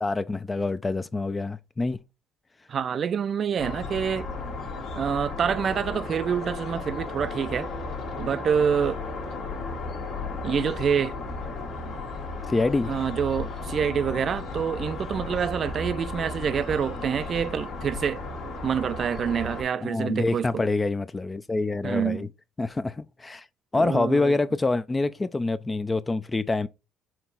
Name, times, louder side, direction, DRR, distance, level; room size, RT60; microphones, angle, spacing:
voice 1, 0.0-2.0 12.5-13.0 19.8-22.3 22.6-23.5 23.7-26.7, left 3 dB, 25° left, 0.4 m, -26 dB
voice 2, 2.7-4.3 5.0-7.7 8.2-9.0 10.4-11.2 11.8-12.0 12.9-18.2 18.6-20.6 21.8-22.3 23.7-24.3, right 7 dB, 50° right, 0.4 m, -27 dB
sound 1, 3.6-19.6, left 3 dB, 65° left, 1.5 m, -34 dB
4.4 x 2.9 x 3.9 m
supercardioid pair, 75°, 0 cm